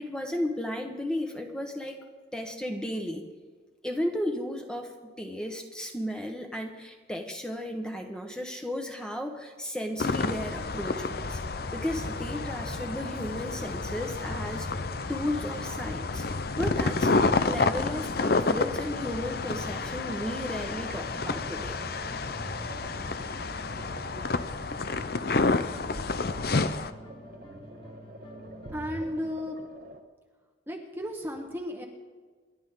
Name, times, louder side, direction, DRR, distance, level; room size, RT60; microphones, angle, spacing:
voice 1, 0.0-2.0 2.3-3.2 3.8-4.9 5.2-11.4 11.7-14.7 15.1-16.3 16.6-21.8, left 1 dB, 5° left, 3 dB, 1.4 m, -34 dB
sound 1, 10.0-26.9, left 3 dB, 55° left, 0.7 m, -30 dB
sound 2, 10.3-30.0, right 1 dB, 50° right, 1.2 m, -47 dB
sound 3, 19.5-29.3, equal, 25° left, 1.5 m, -49 dB
voice 2, 28.7-29.6 30.7-31.9, equal, 10° right, 1 dB, 1.2 m, -34 dB
28.0 x 11.5 x 3.9 m, 1.5 s
head